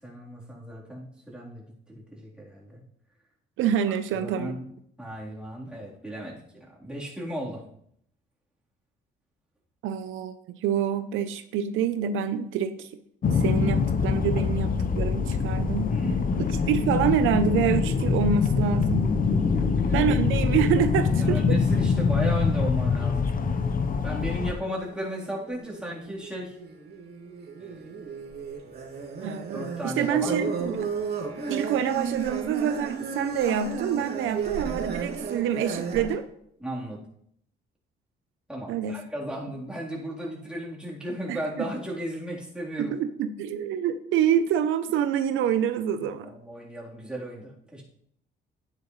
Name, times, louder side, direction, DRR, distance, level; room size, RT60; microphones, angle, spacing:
voice 1, 0.0-2.8 3.9-4.7 5.0-7.6 15.9-16.2 19.5-20.1 21.2-23.3 24.0-26.6 27.6-28.0 29.5-30.4 36.6-37.0 38.5-43.0 46.2-47.8, right 1 dB, 5° right, -5 dB, 3.6 m, -35 dB
voice 2, 3.6-4.5 9.8-12.9 13.3-15.9 16.4-19.1 19.9-21.6 29.2-30.9 31.5-36.2 38.7-39.0 41.3-41.7 42.8-46.3, right 8 dB, 90° right, 10 dB, 0.7 m, -27 dB
sound 1, 13.2-24.5, left 5 dB, 45° left, 0.9 m, -24 dB
sound 2, 23.4-23.9 24.2-36.1, right 5 dB, 55° right, 2.5 m, -34 dB
11.0 x 9.7 x 3.2 m, 0.69 s
cardioid pair, 90°, 20 cm